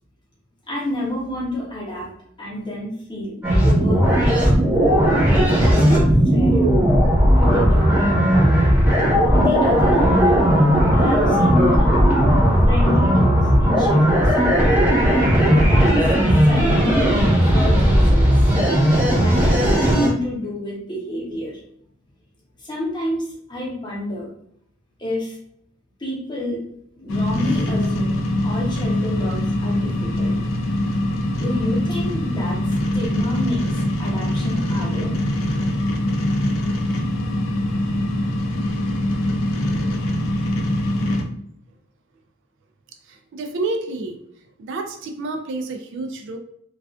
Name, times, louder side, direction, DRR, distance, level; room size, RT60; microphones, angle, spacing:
voice 1, 0.7-2.1 2.4-3.4 3.6-4.3 5.2-6.1 6.3-6.6 7.4-8.6 9.3-10.4 10.9-12.2 12.7-14.7 15.5-16.0 16.4-17.2 17.5-18.5 19.2-21.5 22.6-24.3 25.0-25.4 26.0-26.6 26.9-29.9 30.1-30.4 31.3-32.6 32.9-33.6 34.0-35.1 37.1-37.2, left 1 dB, 20° left, -4 dB, 0.8 m, -29 dB
sound 1, 3.4-20.1, equal, 10° right, 0.9 m, -16 dB
sound 2, 27.1-41.2, left 1 dB, 70° left, 0.4 m, -23 dB
voice 2, 43.1-44.2 44.6-46.4, right 3 dB, 60° right, 6 dB, 0.3 m, -29 dB
2.3 x 2.3 x 2.3 m, 0.67 s
head